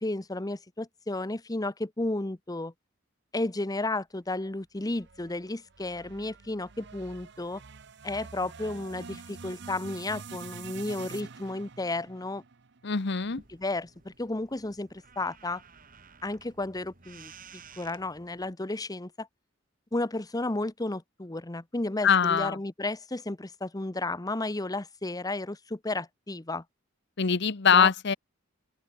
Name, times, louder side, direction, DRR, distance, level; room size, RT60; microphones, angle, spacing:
voice 1, 0.0-2.7 3.3-7.6 8.0-12.4 13.5-15.6 16.2-17.3 17.8-19.3 19.9-26.6 27.7-27.9, left 2 dB, 20° left, 0.9 m, -33 dB
sound 1, 4.9-13.2, right 5 dB, 65° right, 0.9 m, -46 dB
voice 2, 12.8-13.4 22.0-22.6 27.2-28.2, left 6 dB, 60° left, 1.0 m, -23 dB
sound 2, 13.2-18.5, right 5 dB, 45° right, 5.8 m, -53 dB
open air
head